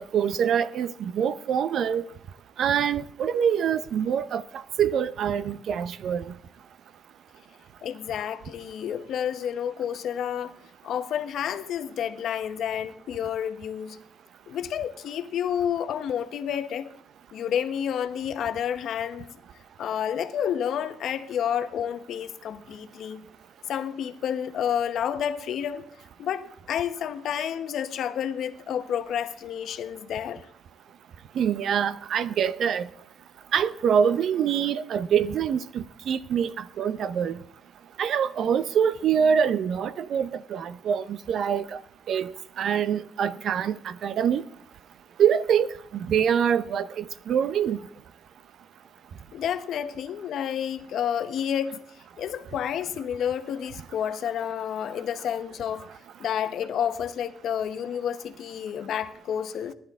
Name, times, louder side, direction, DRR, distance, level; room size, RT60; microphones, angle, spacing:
voice 1, 0.0-2.0 2.6-4.4 4.8-6.2 31.4-32.9 33.5-36.5 36.8-37.4 38.0-41.8 42.1-42.3 42.6-44.4 45.2-45.7 46.0-47.8, right 8 dB, 65° right, 0.7 m, -25 dB
voice 2, 7.8-10.5 10.8-14.0 14.5-16.9 17.3-19.3 19.8-23.3 23.7-25.8 26.2-30.4 49.3-51.8 52.2-55.9 56.2-59.7, left 9 dB, 70° left, 1.0 m, -30 dB
19.5 x 10.5 x 3.6 m
cardioid pair, 90°, 0 cm